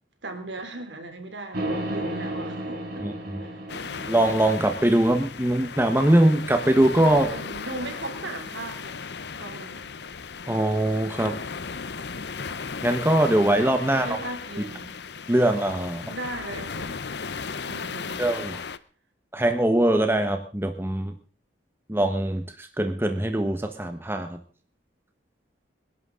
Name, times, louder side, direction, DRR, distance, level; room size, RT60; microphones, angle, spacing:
voice 1, 0.2-3.1 3.4-3.6 7.3-9.0 9.4-9.9 13.9-14.9 16.1-17.0 17.6-18.2, right 2 dB, 70° right, 6 dB, 3.2 m, -37 dB
sound 1, 1.5-5.6, right 1 dB, 50° right, 5.2 m, -33 dB
voice 2, 3.0-3.4 4.1-7.3 10.5-11.4 12.8-14.2 15.3-16.1 18.2-18.6 19.3-21.1 21.9-24.4, right 1 dB, 10° right, 6 dB, 1.3 m, -22 dB
sound 2, 3.7-18.8, left 5 dB, 60° left, 0.7 m, -36 dB
26.5 x 11.5 x 3.9 m, 0.40 s
head